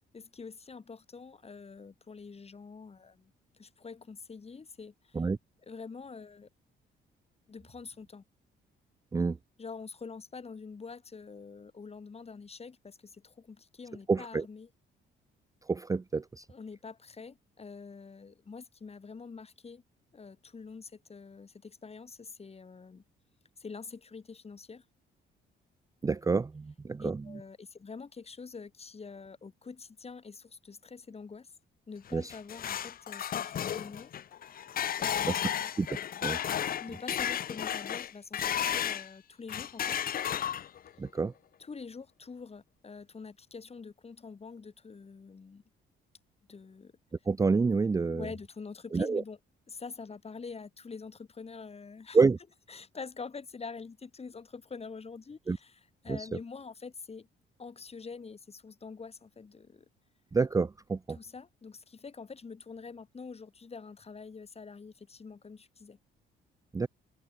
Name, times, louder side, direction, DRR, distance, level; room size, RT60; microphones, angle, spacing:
voice 1, 0.1-3.3 3.6-5.2 5.6-6.5 7.5-8.2 9.6-14.7 16.5-19.8 20.1-23.0 23.6-24.9 27.0-31.5 31.9-34.1 34.5-34.6 35.0-35.7 36.8-40.0 41.6-45.6 46.5-46.9 48.1-49.4 49.7-52.2 52.7-57.3 57.6-59.9 61.1-66.0, left 5 dB, 30° left, 2.5 m, -46 dB
voice 2, 14.1-14.5 15.7-16.5 26.0-27.2 32.1-32.3 35.3-35.4 35.8-35.9 36.2-36.4 41.0-41.3 47.3-48.3 48.9-49.2 52.1-52.4 55.5-55.6 56.1-56.3 60.3-61.2 66.7-66.9, right 4 dB, 15° right, 0.4 m, -28 dB
sound 1, 32.1-39.1 39.5-40.9, left 9 dB, 45° left, 0.6 m, -33 dB
open air
cardioid pair, 90°, 20 cm